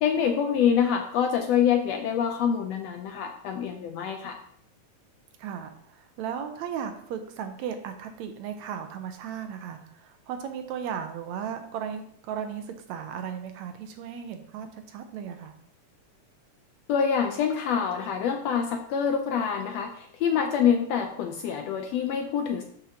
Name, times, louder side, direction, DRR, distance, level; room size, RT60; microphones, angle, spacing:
voice 1, 0.0-4.4 16.9-22.6, left 7 dB, 75° left, 5 dB, 1.5 m, -26 dB
voice 2, 5.4-15.6, right 8 dB, 75° right, 7 dB, 1.9 m, -36 dB
11.5 x 5.4 x 2.8 m, 0.67 s
omnidirectional pair, 3.4 m